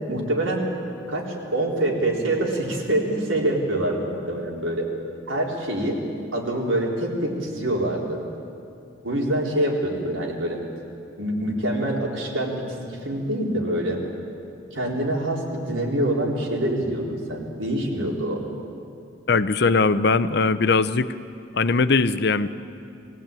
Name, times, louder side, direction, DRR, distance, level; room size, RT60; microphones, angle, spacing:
voice 1, 0.1-0.7 1.1-4.9 5.3-6.0 6.3-8.2 9.0-10.6 11.2-14.0 14.7-18.4, right 1 dB, 90° right, -2 dB, 4.0 m, -25 dB
voice 2, 19.3-21.1 21.5-22.5, left 4 dB, 55° left, 13 dB, 0.7 m, -20 dB
22.0 x 17.0 x 9.0 m, 2.5 s
head